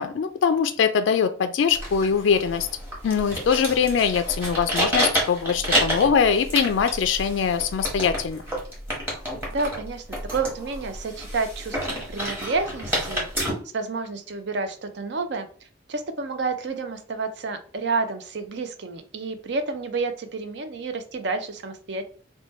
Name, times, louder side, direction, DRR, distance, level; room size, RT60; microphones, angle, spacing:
voice 1, 0.0-2.7 3.0-8.4, left 6 dB, 70° left, 9 dB, 0.3 m, -22 dB
sound 1, 1.7-13.5, equal, 10° right, 1.1 m, -29 dB
voice 2, 9.5-13.3 13.7-15.5 15.9-22.0, right 4 dB, 60° right, 8 dB, 0.5 m, -30 dB
3.1 x 2.2 x 4.2 m, 0.43 s
head